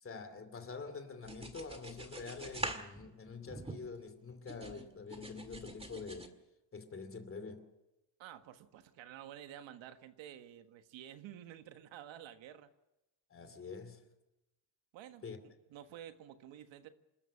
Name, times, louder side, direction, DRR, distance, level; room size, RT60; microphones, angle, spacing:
voice 1, 0.0-6.3 6.7-7.7 13.3-14.0 15.2-15.4, left 4 dB, 30° left, 2.7 m, -46 dB
sound 1, 1.2-4.1 4.5-6.3, right 2 dB, 15° right, 1.8 m, -44 dB
voice 2, 8.2-12.7 14.9-16.9, right 11 dB, 85° right, 1.6 m, -51 dB
28.0 x 13.5 x 7.5 m
cardioid pair, 140°, 44 cm